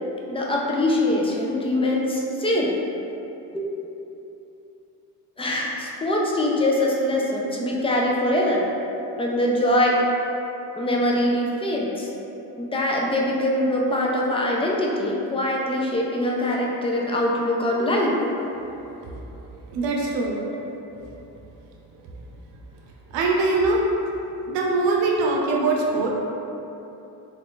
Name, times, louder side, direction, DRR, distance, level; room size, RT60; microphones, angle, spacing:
voice 1, 0.3-2.8 3.5-3.6 5.4-8.7 9.2-10.0 10.8-12.1 12.6-18.2, left 1 dB, 15° left, -2 dB, 0.3 m, -23 dB
voice 2, 19.7-20.4 23.1-23.8 24.5-26.1, right 3 dB, 65° right, -1 dB, 0.7 m, -22 dB
3.3 x 2.4 x 3.7 m, 3.0 s
cardioid pair, 95°, 45 cm